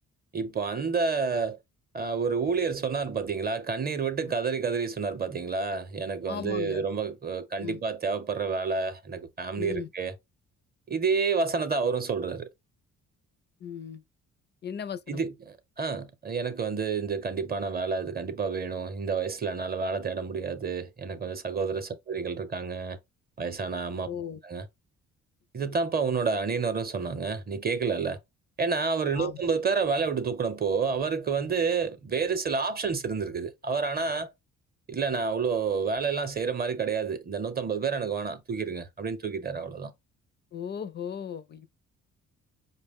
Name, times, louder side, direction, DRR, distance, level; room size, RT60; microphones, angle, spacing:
voice 1, 0.3-1.6 1.9-10.1 10.9-12.5 15.1-15.3 15.8-23.0 23.4-24.1 24.4-24.6 25.5-28.2 28.6-34.3 34.9-39.9, right 5 dB, 30° right, 0.7 m, -29 dB
voice 2, 6.3-6.8 7.6-7.8 9.6-9.9 13.6-14.0 14.6-15.2 24.1-24.4 29.1-29.4 40.5-41.7, left 8 dB, 35° left, 0.4 m, -36 dB
4.8 x 2.1 x 3.5 m
cardioid pair, 90°, 30 cm